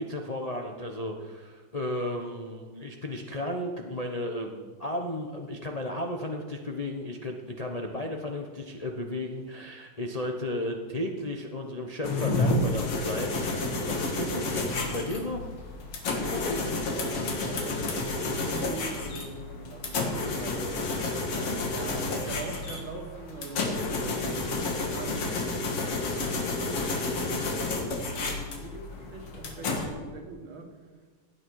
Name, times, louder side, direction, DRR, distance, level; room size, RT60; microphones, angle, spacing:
voice 1, 0.0-15.4, left 1 dB, 65° left, 1 dB, 0.3 m, -34 dB
sound 1, 12.0-29.9, left 2 dB, 85° left, 2.7 m, -30 dB
voice 2, 16.2-21.0 21.3-26.0 26.3-30.8, right 3 dB, 65° right, 3 dB, 2.4 m, -43 dB
17.0 x 9.6 x 4.8 m, 1.4 s
omnidirectional pair, 2.4 m